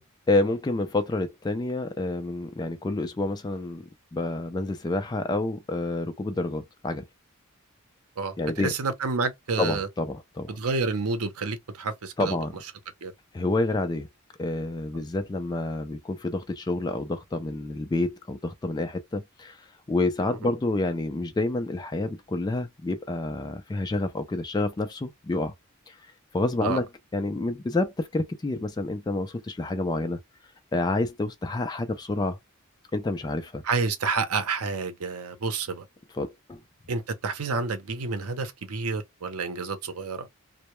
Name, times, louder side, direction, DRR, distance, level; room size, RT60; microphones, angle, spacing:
voice 1, 0.3-3.8 4.1-7.1 8.4-8.7 9.6-10.5 12.2-12.6 13.3-14.1 14.4-19.6 19.9-25.5 25.9-26.0 26.3-26.9 27.1-30.2 30.7-32.4 32.9-33.6 36.1-36.6, left 2 dB, 20° left, 0.3 m, -28 dB
voice 2, 8.2-9.9 10.5-12.4 13.0-13.1 20.4-20.5 26.6-26.8 33.6-35.9 36.9-40.3, right 4 dB, 85° right, 0.6 m, -29 dB
2.2 x 2.0 x 2.9 m
head